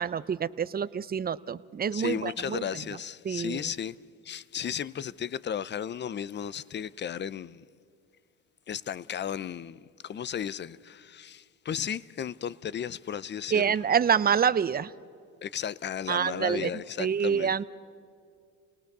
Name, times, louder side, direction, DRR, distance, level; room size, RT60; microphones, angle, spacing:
voice 1, 0.0-2.6 3.3-3.6 13.5-14.9 16.1-16.7 17.0-17.6, right 7 dB, 25° right, 0.6 m, -26 dB
voice 2, 1.9-4.0 4.2-7.6 8.7-13.8 15.4-17.6, left 8 dB, 30° left, 0.5 m, -35 dB
29.0 x 18.5 x 6.7 m
supercardioid pair, 85°, 36 cm